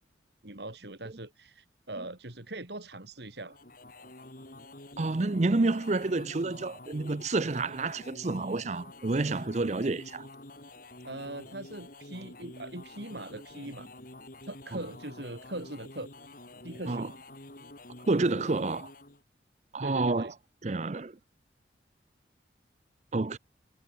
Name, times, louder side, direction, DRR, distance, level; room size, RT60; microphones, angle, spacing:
voice 1, 0.4-3.6 11.0-13.9 14.4-16.1 16.6-17.1 19.8-20.3, right 1 dB, 65° right, 3.6 m, -41 dB
sound 1, 3.4-19.2, left 2 dB, 50° left, 4.8 m, -49 dB
voice 2, 5.0-10.3 16.9-17.1 18.1-18.9 19.7-20.3 20.6-21.2 23.1-23.4, right 3 dB, 40° right, 0.6 m, -29 dB
head